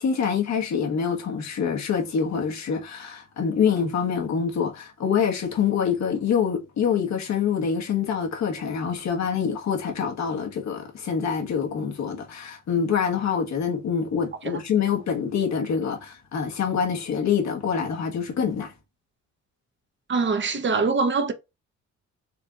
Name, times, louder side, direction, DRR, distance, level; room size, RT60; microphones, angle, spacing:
voice 1, 0.0-18.7, left 7 dB, 65° left, 1.3 m, -25 dB
voice 2, 20.1-21.3, right 4 dB, 40° right, 1.0 m, -23 dB
4.5 x 3.4 x 2.4 m
cardioid pair, 90°, 30 cm